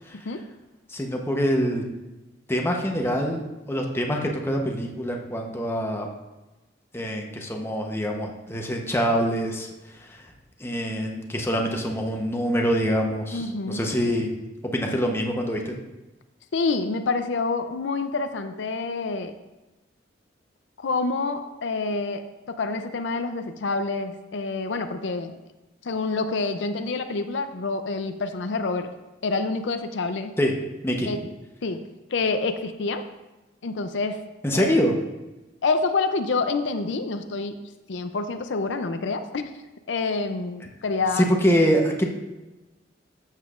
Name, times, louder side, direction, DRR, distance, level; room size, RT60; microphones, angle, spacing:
voice 1, 0.9-1.8 2.5-6.1 6.9-10.3 10.6-14.3 14.6-15.8 30.4-30.5 30.8-31.1 34.4-34.9 41.2-42.0, equal, 15° left, 1 dB, 0.9 m, -25 dB
voice 2, 13.3-13.8 16.5-19.3 20.8-25.4 25.8-28.9 29.2-30.3 31.1-31.3 31.6-31.8 32.1-33.0 33.6-34.2 34.6-34.8 35.6-37.5 37.9-39.5 39.9-41.3, left 3 dB, 75° left, 8 dB, 0.5 m, -27 dB
12.5 x 7.3 x 2.5 m, 1.1 s
head